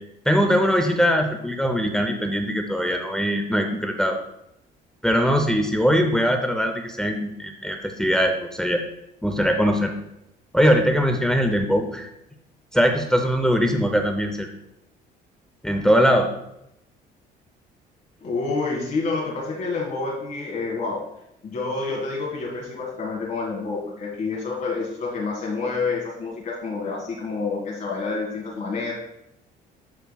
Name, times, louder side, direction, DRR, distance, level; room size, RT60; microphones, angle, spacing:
voice 1, 0.3-4.2 5.0-8.8 9.2-9.9 10.5-12.1 12.7-14.5 15.6-16.3, equal, 5° left, 4 dB, 0.6 m, -21 dB
voice 2, 18.2-21.0 21.4-28.9, left 4 dB, 50° left, -3 dB, 1.9 m, -28 dB
12.5 x 4.5 x 2.3 m, 0.83 s
cardioid pair, 110°, 17 cm